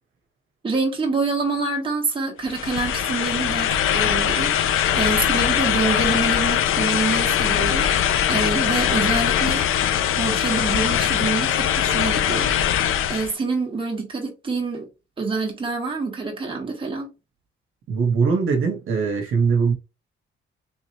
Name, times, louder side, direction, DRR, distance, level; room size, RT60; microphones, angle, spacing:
voice 1, 0.6-9.7 10.2-12.8 13.1-14.9 15.2-17.1, right 3 dB, 25° right, 1.4 m, -26 dB
sound 1, 2.4-13.3, left 10 dB, 80° left, 0.5 m, -21 dB
voice 2, 17.9-19.7, right 5 dB, 75° right, 1.0 m, -21 dB
3.7 x 2.9 x 2.8 m
cardioid pair, 110°, 21 cm